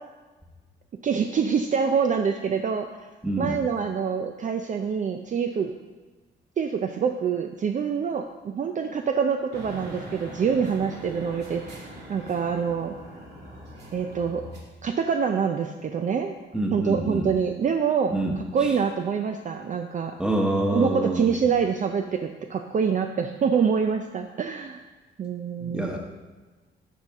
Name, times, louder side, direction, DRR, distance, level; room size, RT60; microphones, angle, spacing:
voice 1, 1.0-3.1 3.4-5.7 6.6-13.0 13.9-14.4 14.8-16.3 16.7-20.1 20.7-24.8 25.2-26.0, right 6 dB, 40° right, 5 dB, 0.5 m, -26 dB
voice 2, 3.2-3.5 16.5-17.3 18.1-18.3 20.2-21.3 25.6-26.0, right 1 dB, 5° right, 1 dB, 1.3 m, -26 dB
sound 1, 9.5-14.6, right 1 dB, 60° right, 2.1 m, -41 dB
11.5 x 4.2 x 3.6 m, 1.2 s
cardioid pair, 90°, 20 cm